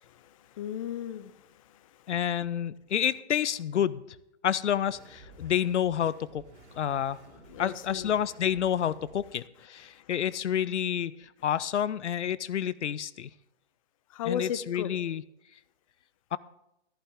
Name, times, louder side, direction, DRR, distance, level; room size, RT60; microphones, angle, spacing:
voice 1, 0.0-2.1 5.4-5.5 7.5-8.1 9.9-10.1 14.1-14.9, left 9 dB, 30° left, 14 dB, 0.4 m, -37 dB
voice 2, 2.1-4.0 4.4-6.4 6.8-7.2 7.6-13.3 14.3-15.2 16.3-16.4, left 9 dB, 85° left, 18 dB, 0.6 m, -29 dB
sound 1, 4.9-9.3, right 3 dB, 85° right, 2.7 m, -54 dB
14.0 x 11.0 x 3.6 m, 0.85 s
hypercardioid pair, 135°, 34 cm